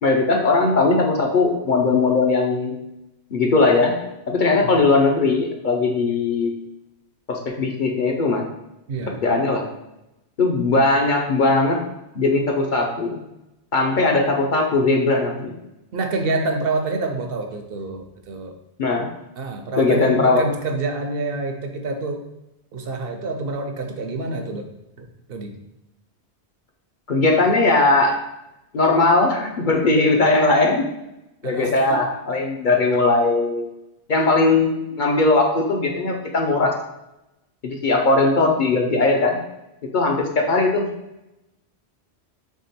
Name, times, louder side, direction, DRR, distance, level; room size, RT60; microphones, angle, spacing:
voice 1, 0.0-2.7 3.3-3.9 4.3-6.5 7.3-8.4 9.2-9.6 10.4-11.8 12.1-13.2 13.7-15.5 18.8-19.1 19.8-20.5 27.1-28.2 28.7-30.9 31.4-33.7 34.1-36.8 37.6-39.4 39.9-40.9, left 3 dB, 50° left, 1 dB, 0.8 m, -19 dB
voice 2, 8.9-9.2 15.9-18.6 19.4-22.2 22.7-24.7 25.0-25.5 31.4-32.0, right 3 dB, 65° right, 4 dB, 0.8 m, -27 dB
3.7 x 3.5 x 4.2 m, 0.91 s
omnidirectional pair, 1.1 m